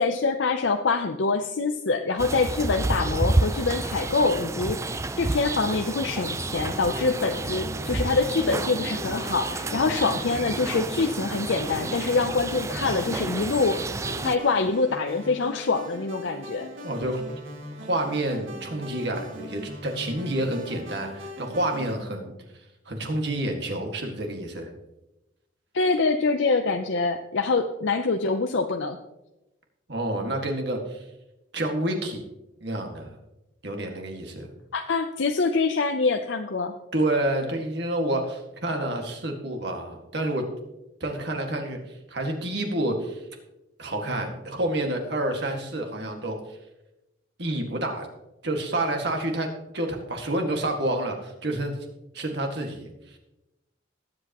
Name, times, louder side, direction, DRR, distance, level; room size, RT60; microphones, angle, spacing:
voice 1, 0.0-16.7 25.7-29.0 34.7-36.7, left 4 dB, 70° left, 5 dB, 0.6 m, -25 dB
sound 1, 2.2-14.4, right 2 dB, 15° right, 0.3 m, -30 dB
sound 2, 6.5-22.0, equal, 80° right, 2.4 m, -41 dB
voice 2, 16.8-17.2 17.8-22.3 22.9-24.7 29.9-31.0 31.5-32.2 32.6-33.1 33.6-34.5 36.9-40.4 41.0-43.2 43.8-46.6 47.4-48.1 48.4-49.5 49.7-51.7 52.1-53.2, right 1 dB, 60° right, 3 dB, 1.9 m, -29 dB
20.0 x 7.9 x 3.0 m, 0.96 s
head